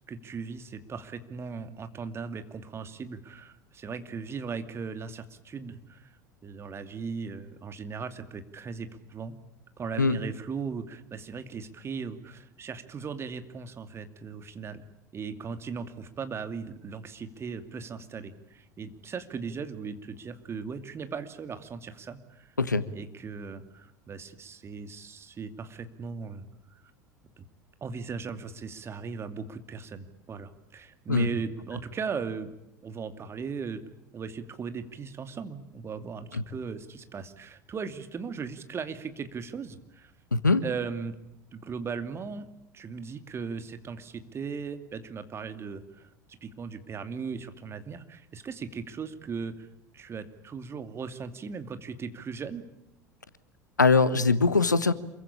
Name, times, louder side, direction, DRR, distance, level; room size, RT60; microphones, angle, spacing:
voice 1, 0.1-6.1 6.4-9.3 9.8-14.8 15.1-22.5 22.9-26.4 27.4-27.5 27.8-32.5 32.8-33.8 34.1-40.1 40.6-41.1 41.5-42.5 42.7-49.7 49.9-52.6, right 5 dB, 25° right, 9 dB, 2.6 m, -38 dB
voice 2, 40.3-40.6 53.8-54.9, left 4 dB, 85° left, 16 dB, 1.2 m, -22 dB
27.5 x 23.0 x 8.8 m, 0.84 s
figure-of-eight pair, 75°, 10 cm